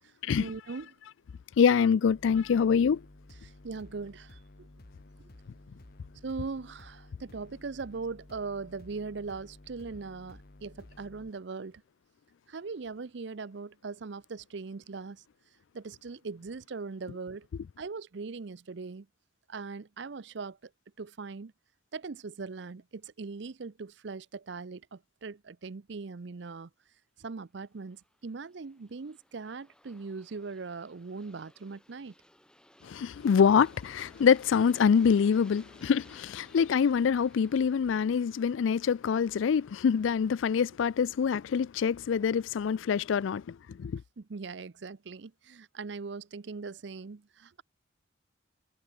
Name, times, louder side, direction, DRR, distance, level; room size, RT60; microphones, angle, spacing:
voice 1, 0.4-0.9 3.4-4.7 6.2-11.8 12.5-15.2 15.7-17.5 17.8-19.1 19.5-20.6 21.0-21.5 21.9-26.7 27.2-32.1 44.2-47.6, right 4 dB, 60° right, 0.6 m, -40 dB
voice 2, 1.6-3.0 32.8-44.0, left 6 dB, 75° left, 0.4 m, -25 dB
sound 1, 2.1-11.3, left 1 dB, 50° left, 1.2 m, -53 dB
Aircraft, 27.7-40.5, left 1 dB, 5° left, 3.2 m, -60 dB
head